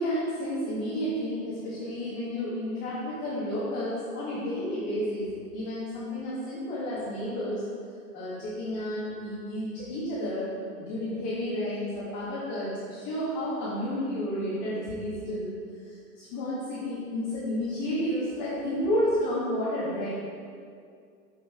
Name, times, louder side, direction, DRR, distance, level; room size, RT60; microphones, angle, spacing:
voice 1, 0.0-7.6 8.1-10.5 10.8-15.5 15.9-20.1, equal, 30° left, -9 dB, 1.5 m, -31 dB
5.8 x 5.6 x 4.1 m, 2.3 s
hypercardioid pair, 145°, 50 cm